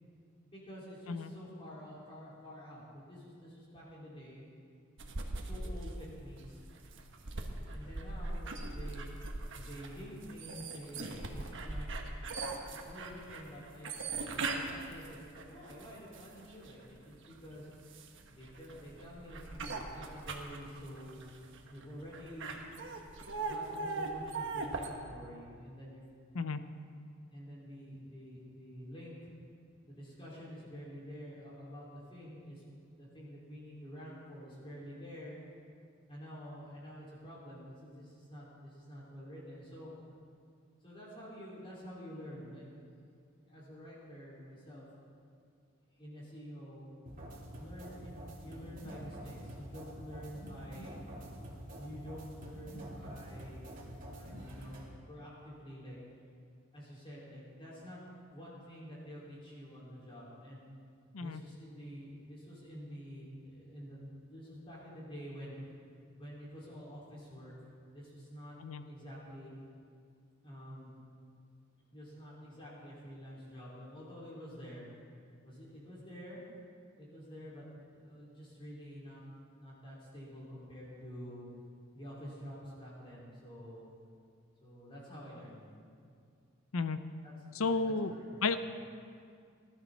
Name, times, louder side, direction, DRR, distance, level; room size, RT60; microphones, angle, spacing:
voice 1, 0.5-4.4 5.1-6.6 7.6-9.1 9.5-11.9 12.1-17.7 18.3-21.2 21.7-26.0 27.0-29.3 29.8-35.3 36.1-39.9 40.8-42.8 43.5-44.8 45.9-47.3 47.6-51.0 51.7-53.7 54.1-56.0 56.7-58.0 58.3-60.6 61.2-64.0 64.3-65.7 66.1-67.5 67.9-69.5 70.4-70.9 71.9-74.8 75.4-76.4 77.0-77.7 77.9-79.2 79.6-81.5 81.9-83.9 84.6-85.7 86.0-86.1 87.2-88.6, equal, 25° left, -7 dB, 4.7 m, -49 dB
sound 1, 5.0-16.7 17.3-24.9, right 3 dB, 65° right, 1.3 m, -40 dB
sound 2, 47.1-54.9, equal, 40° right, 2.7 m, -47 dB
voice 2, 87.6-88.1 88.4-88.6, left 4 dB, 90° left, 11 dB, 0.7 m, -32 dB
20.0 x 12.5 x 4.1 m, 2.2 s
head